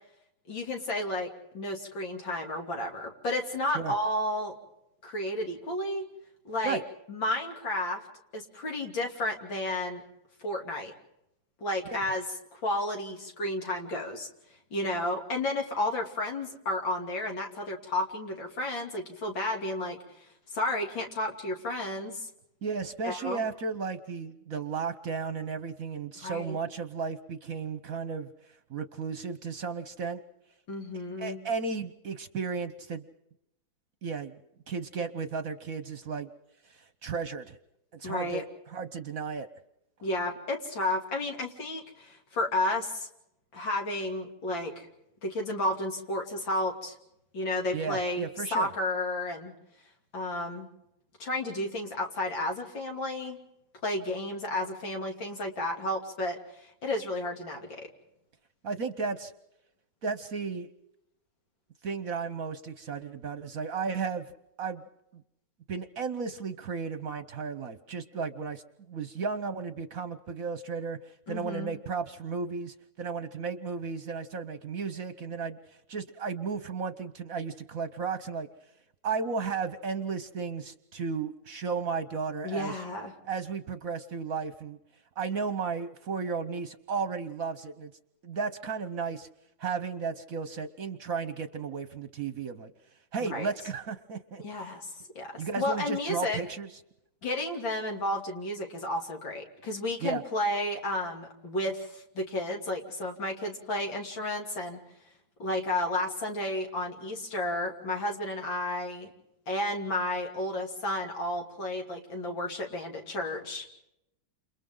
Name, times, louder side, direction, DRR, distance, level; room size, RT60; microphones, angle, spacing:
voice 1, 0.5-1.3 1.5-4.6 5.0-6.0 6.5-6.8 7.1-8.0 8.3-10.0 10.4-10.9 11.6-12.2 12.5-14.3 14.7-20.0 20.5-22.3 23.0-23.4 26.2-26.6 30.7-31.4 38.0-38.4 40.0-43.1 43.5-44.9 45.2-47.0 47.3-49.5 50.1-50.7 51.2-53.4 53.8-57.9 71.3-71.8 82.4-83.1 93.2-93.5 94.4-94.9 95.2-96.4 97.2-104.8 105.4-109.1 109.5-113.7, left 1 dB, 75° left, 2 dB, 3.7 m, -32 dB
voice 2, 22.6-28.3 28.7-30.2 31.2-33.0 34.0-34.3 34.7-36.3 36.7-37.6 37.9-39.5 47.7-48.7 58.6-59.3 60.0-60.7 61.8-64.3 64.6-64.8 65.7-68.6 68.9-78.5 79.0-82.8 83.2-84.8 85.2-87.9 88.2-89.3 89.6-92.7 93.1-94.4 95.4-96.7 100.0-100.2, right 5 dB, 55° right, 12 dB, 1.2 m, -34 dB
29.5 x 28.5 x 3.9 m, 0.82 s
omnidirectional pair, 2.1 m